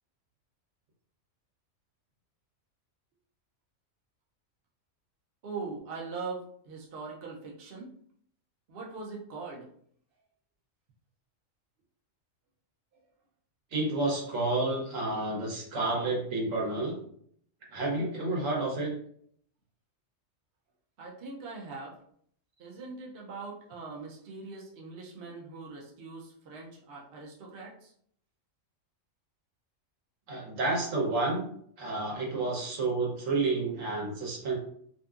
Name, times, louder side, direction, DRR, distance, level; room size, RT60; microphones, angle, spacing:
voice 1, 5.4-7.9 8.7-9.7 21.0-22.0 22.6-27.9, right 4 dB, 55° right, -2 dB, 0.7 m, -41 dB
voice 2, 13.7-17.0 17.7-18.9 30.3-31.5 31.8-34.6, right 2 dB, 75° right, -2 dB, 1.3 m, -30 dB
2.6 x 2.5 x 2.3 m, 0.64 s
omnidirectional pair, 1.4 m